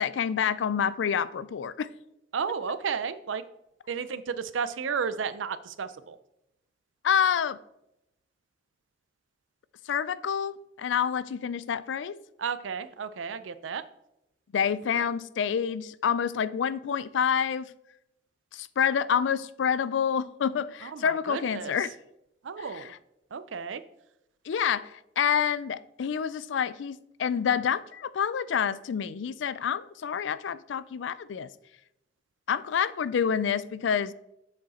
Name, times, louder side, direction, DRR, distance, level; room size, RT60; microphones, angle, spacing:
voice 1, 0.0-1.9 7.0-7.6 9.9-12.2 14.5-17.7 18.5-22.0 22.7-22.9 24.5-31.5 32.5-34.1, left 7 dB, 75° left, 0.4 m, -28 dB
voice 2, 2.3-3.4 3.9-6.2 12.4-13.8 15.0-15.1 20.8-21.7 22.4-22.9 23.3-23.8, right 6 dB, 85° right, 0.5 m, -33 dB
7.4 x 6.3 x 4.2 m
head